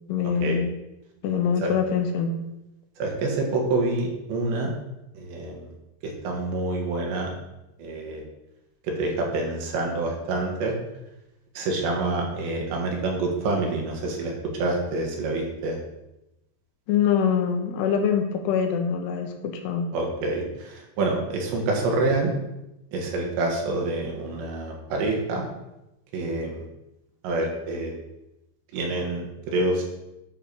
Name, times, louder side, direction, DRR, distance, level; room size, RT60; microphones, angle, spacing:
voice 1, 0.1-0.7 1.2-2.4 16.9-19.9, left 7 dB, 75° left, 4 dB, 2.9 m, -24 dB
voice 2, 3.0-4.7 5.2-5.7 6.0-7.3 7.8-8.2 8.8-10.7 11.6-14.3 14.6-15.8 19.9-22.3 22.9-25.4 26.1-26.7 27.2-27.9 28.7-29.8, right 2 dB, 75° right, 0 dB, 3.9 m, -27 dB
10.0 x 4.5 x 6.9 m, 0.93 s
omnidirectional pair, 5.2 m